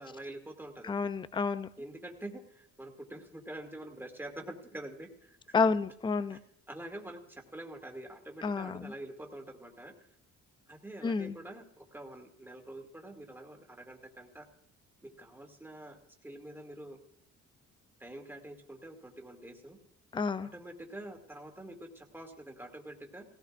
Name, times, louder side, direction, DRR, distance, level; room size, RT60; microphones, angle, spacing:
voice 1, 0.0-0.9 1.8-5.7 6.3-6.4 6.7-9.9 10.7-14.5 15.0-17.0 18.0-19.8 20.5-23.3, right 1 dB, 5° right, 3 dB, 2.2 m, -46 dB
voice 2, 0.8-1.7 5.5-6.4 8.4-8.9 11.0-11.4 20.1-20.5, left 4 dB, 15° left, 14 dB, 0.5 m, -30 dB
17.5 x 16.5 x 2.5 m, 0.70 s
cardioid pair, 90°, 30 cm